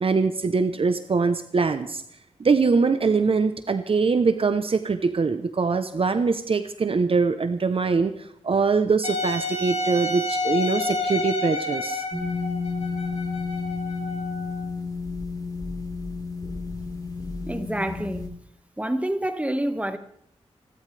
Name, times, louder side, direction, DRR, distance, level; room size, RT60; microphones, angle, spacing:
voice 1, 0.0-2.0 2.4-12.0, right 4 dB, 55° right, 10 dB, 0.9 m, -23 dB
Wind instrument woodwind instrument, 9.0-14.7, left 2 dB, 70° left, 3.5 m, -30 dB
sound 1, 12.1-18.3, left 4 dB, 35° left, 4.2 m, -31 dB
voice 2, 17.5-18.2 18.8-20.0, right 1 dB, 10° right, 8 dB, 1.7 m, -27 dB
28.5 x 12.5 x 3.4 m, 0.71 s
cardioid pair, 50°, 11 cm